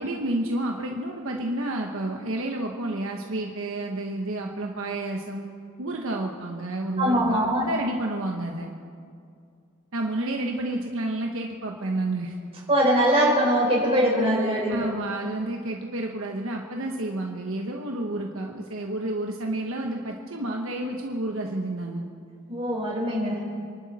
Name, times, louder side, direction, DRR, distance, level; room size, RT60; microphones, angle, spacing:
voice 1, 0.0-5.5 5.8-8.7 9.9-12.6 14.1-22.1, right 1 dB, 65° right, 1 dB, 1.3 m, -30 dB
voice 2, 7.0-7.7 12.7-14.9 22.5-23.4, equal, 25° right, -4 dB, 5.0 m, -22 dB
28.5 x 12.0 x 4.3 m, 2.3 s
head